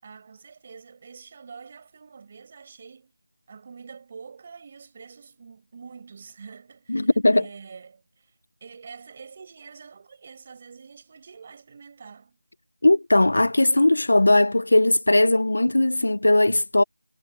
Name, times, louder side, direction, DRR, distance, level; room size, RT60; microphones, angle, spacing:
voice 1, 0.0-3.1 3.5-8.3 8.6-12.4, right 5 dB, 15° right, 8.0 m, -46 dB
voice 2, 6.9-7.4 12.8-16.8, left 2 dB, 55° left, 1.1 m, -19 dB
figure-of-eight pair, 180°, 0 cm